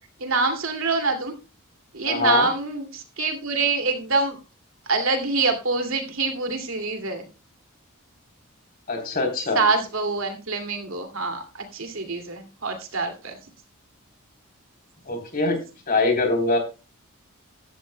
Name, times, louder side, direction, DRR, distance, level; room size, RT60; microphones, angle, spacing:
voice 1, 0.2-1.3 1.9-2.9 3.2-4.3 4.9-7.2 9.6-11.4 11.7-13.3, right 3 dB, 65° right, 5 dB, 2.4 m, -25 dB
voice 2, 2.0-2.5 8.9-9.7 15.1-15.6 15.9-16.6, left 3 dB, 40° left, 3 dB, 3.6 m, -23 dB
15.0 x 12.5 x 2.2 m, 0.30 s
head